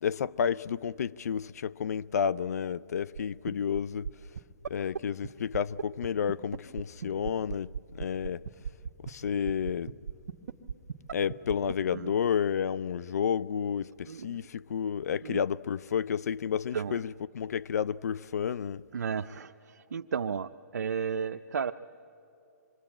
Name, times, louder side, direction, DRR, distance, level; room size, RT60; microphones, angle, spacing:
voice 1, 0.0-4.1 4.7-8.4 9.0-10.0 11.1-18.8, left 7 dB, 65° left, 0.5 m, -31 dB
sound 1, 3.2-3.3 3.5-3.8 4.0-4.1 4.4-4.5 4.6-4.7 4.9-5.0 5.2-5.3 5.5-11.7, right 7 dB, 70° right, 1.2 m, -34 dB
voice 2, 14.1-14.5 15.2-15.4 16.7-17.0 18.9-21.7, right 6 dB, 90° right, 0.6 m, -33 dB
26.0 x 22.5 x 8.8 m
hypercardioid pair, 160°, 9 cm